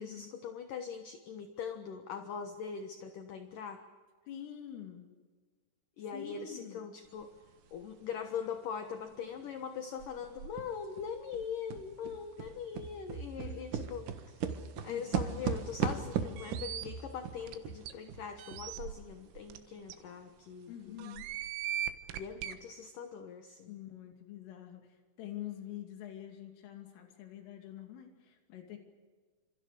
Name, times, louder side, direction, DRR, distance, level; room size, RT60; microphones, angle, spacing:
voice 1, 0.0-3.8 6.0-7.3 7.7-14.5 14.8-21.0 22.1-23.8, left 7 dB, 70° left, 6 dB, 2.1 m, -41 dB
voice 2, 4.3-5.1 6.1-6.8 13.4-13.6 14.8-15.4 20.7-21.3 23.7-28.8, left 11 dB, 85° left, 4 dB, 5.2 m, -46 dB
sound 1, 7.2-7.3 7.7-9.6 10.0-19.5 19.8-19.9 20.4-20.5 21.0-21.5, right 7 dB, 60° right, 2.2 m, -38 dB
sound 2, 16.4-16.9 17.5-17.6 17.9-18.0 18.4-18.8 19.5-19.6 19.9-20.0 21.0-22.6, right 11 dB, 85° right, 3.8 m, -38 dB
30.0 x 27.0 x 5.1 m, 1.4 s
omnidirectional pair, 5.6 m